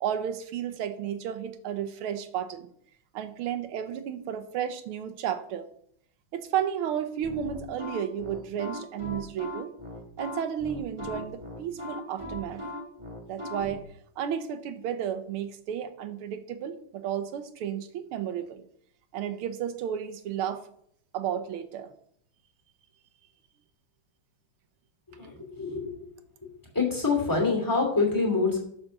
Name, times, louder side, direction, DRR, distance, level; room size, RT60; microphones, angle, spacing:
voice 1, 0.0-2.7 3.1-5.7 6.3-9.7 10.2-12.6 13.3-13.9 14.2-18.6 19.1-20.7 21.1-21.9, right 9 dB, 85° right, 9 dB, 1.7 m, -32 dB
sound 1, 7.2-13.8, left 1 dB, 15° right, 1.2 m, -38 dB
voice 2, 25.1-26.1 26.7-28.6, left 4 dB, 10° left, 1 dB, 2.6 m, -26 dB
11.0 x 4.9 x 6.6 m, 0.68 s
omnidirectional pair, 2.3 m